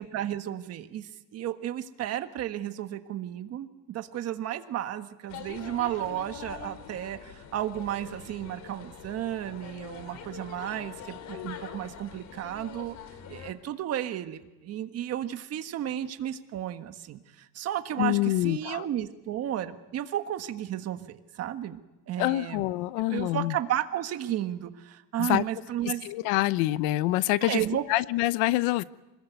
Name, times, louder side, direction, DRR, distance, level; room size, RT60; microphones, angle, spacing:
voice 1, 0.0-13.0 13.3-21.8 22.1-22.7 23.1-26.0 27.4-27.8, right 11 dB, 40° right, 8 dB, 1.6 m, -33 dB
sound 1, 5.3-13.5, left 8 dB, 45° left, 2.9 m, -44 dB
voice 2, 18.0-18.8 22.2-23.5 25.2-25.4 26.0-27.6 27.9-28.8, left 18 dB, 75° left, 16 dB, 1.0 m, -26 dB
25.5 x 21.0 x 9.4 m, 1.1 s
cardioid pair, 155°, 38 cm